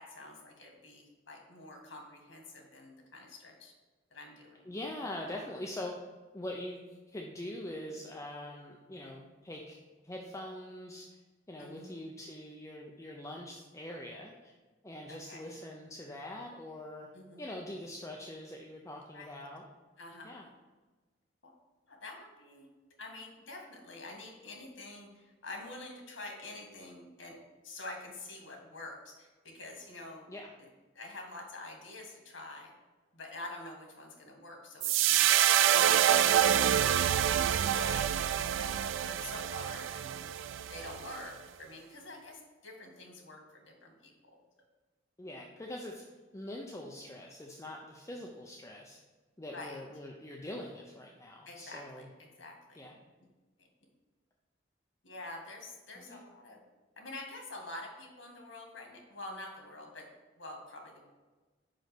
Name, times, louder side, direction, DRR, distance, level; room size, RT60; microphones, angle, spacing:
voice 1, 0.0-3.7 4.1-4.7 11.6-12.0 15.1-15.5 17.1-17.4 19.1-19.5 20.0-20.5 21.4-21.5 21.9-22.7 23.0-27.4 27.6-30.3 30.9-32.7 33.1-36.9 37.3-40.1 40.7-44.1 49.5-49.8 51.5-52.1 52.4-52.9 55.0-56.6 57.0-60.1 60.4-61.1, left 2 dB, 90° left, 1 dB, 1.8 m, -47 dB
voice 2, 4.7-6.0 6.3-6.8 7.1-9.8 10.0-11.2 11.5-14.5 14.8-17.1 17.4-19.6 20.2-20.4 30.3-30.5 35.7-36.0 45.2-46.1 46.3-49.0 49.4-52.1 52.7-52.9 56.0-56.2, left 1 dB, 15° left, 0 dB, 0.5 m, -43 dB
sound 1, 34.8-41.2, right 10 dB, 85° right, 0.3 m, -27 dB
5.3 x 5.1 x 5.9 m, 1.3 s
head